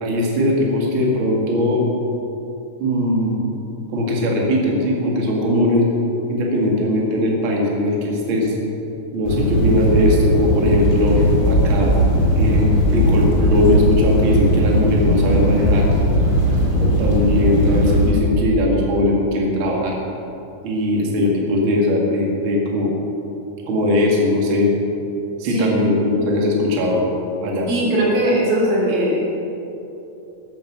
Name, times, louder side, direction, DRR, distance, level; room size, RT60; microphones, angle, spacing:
voice 1, 0.0-1.9 2.8-3.4 3.9-5.9 6.3-8.6 9.1-11.9 12.3-15.9 16.8-20.0 20.6-22.9 23.7-24.7 25.4-27.0 27.4-27.7, left 1 dB, 45° right, -1 dB, 2.5 m, -19 dB
sound 1, 9.2-18.1, equal, 25° right, 2.8 m, -17 dB
voice 2, 25.5-25.8 27.7-29.2, right 1 dB, 90° right, -4 dB, 4.7 m, -19 dB
13.0 x 11.0 x 6.0 m, 2.9 s
omnidirectional pair, 3.6 m